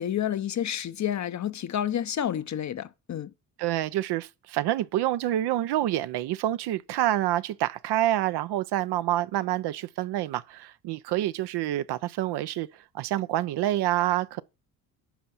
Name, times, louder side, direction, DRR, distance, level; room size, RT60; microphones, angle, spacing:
voice 1, 0.0-3.3, left 10 dB, 40° left, 0.7 m, -29 dB
voice 2, 3.6-12.7 12.9-14.4, right 14 dB, 60° right, 0.6 m, -27 dB
10.0 x 5.5 x 4.3 m
hypercardioid pair, 55°, 46 cm